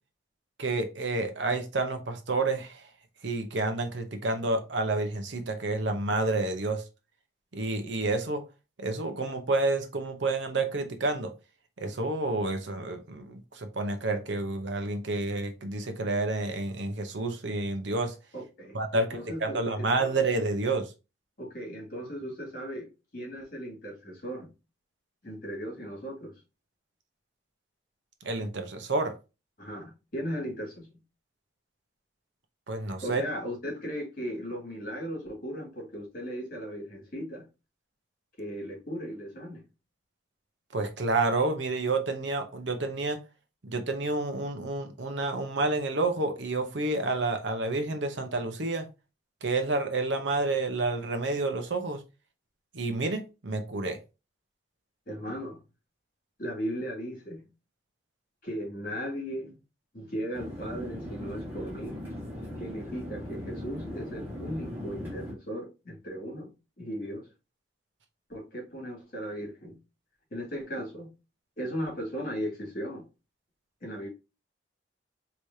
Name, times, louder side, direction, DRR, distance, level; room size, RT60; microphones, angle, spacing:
voice 1, 0.6-2.8 3.2-6.8 7.5-8.4 8.8-11.3 11.8-18.1 18.7-19.1 19.4-20.9 28.2-29.1 32.7-33.2 40.7-43.2 43.6-48.9 49.4-52.0 52.7-54.0, right 2 dB, 70° right, 0.8 m, -29 dB
voice 2, 18.3-20.1 21.4-24.5 25.2-26.3 29.6-30.9 33.0-37.4 38.4-39.6 55.1-55.6 56.4-57.5 58.4-59.6 59.9-62.0 62.6-66.5 66.8-67.2 68.3-69.8 70.3-71.1 71.6-73.0 73.8-74.1, equal, 50° left, 2.2 m, -37 dB
sound 1, 60.3-65.3, left 1 dB, 10° right, 1.7 m, -39 dB
4.8 x 3.1 x 2.7 m
head